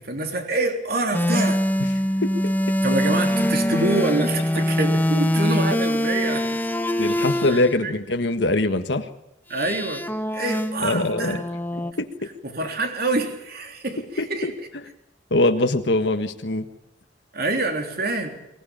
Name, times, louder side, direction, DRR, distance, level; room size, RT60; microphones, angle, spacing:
voice 1, 0.0-1.7 2.8-6.7 7.2-7.9 9.5-10.1 10.3-11.4 12.4-14.7 17.3-18.4, right 2 dB, 55° right, 4 dB, 3.4 m, -26 dB
sound 1, 1.1-7.7 9.5-11.9, equal, 10° left, 1.4 m, -23 dB
voice 2, 2.2-2.5 7.0-9.1 10.8-11.4 12.0-12.1 14.2-14.5 15.3-16.7, left 2 dB, 70° left, 7 dB, 1.6 m, -22 dB
24.5 x 18.0 x 8.9 m, 0.84 s
head